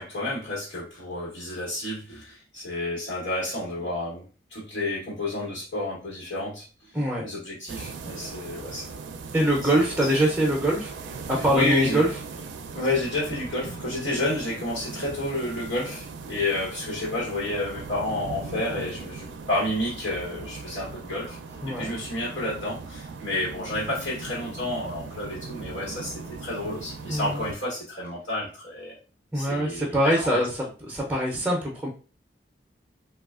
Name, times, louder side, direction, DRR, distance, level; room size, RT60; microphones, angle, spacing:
voice 1, 0.0-4.2 4.5-6.6 7.2-9.0 11.5-12.0 12.7-21.4 21.7-28.9 29.3-30.4, left 1 dB, 85° left, -6 dB, 1.2 m, -30 dB
voice 2, 6.9-7.2 9.3-10.9 11.3-12.1 21.6-21.9 27.1-27.4 29.3-30.5 30.8-31.9, right 1 dB, 10° right, -3 dB, 0.5 m, -23 dB
sound 1, 7.7-27.5, right 4 dB, 85° right, 0.4 m, -39 dB
3.2 x 2.3 x 2.4 m, 0.36 s
head